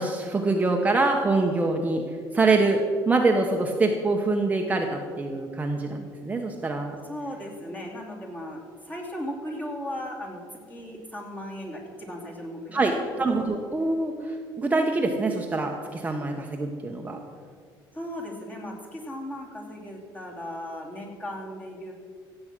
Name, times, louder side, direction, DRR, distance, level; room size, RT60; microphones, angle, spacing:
voice 1, 0.0-2.1 2.3-7.0 12.7-17.2, right 3 dB, 20° right, 2 dB, 1.0 m, -25 dB
voice 2, 7.0-10.4 10.7-12.8 13.3-13.5 17.9-21.9, equal, 20° left, -1 dB, 2.8 m, -37 dB
16.0 x 7.8 x 6.1 m, 2.1 s
cardioid pair, 125°, 9 cm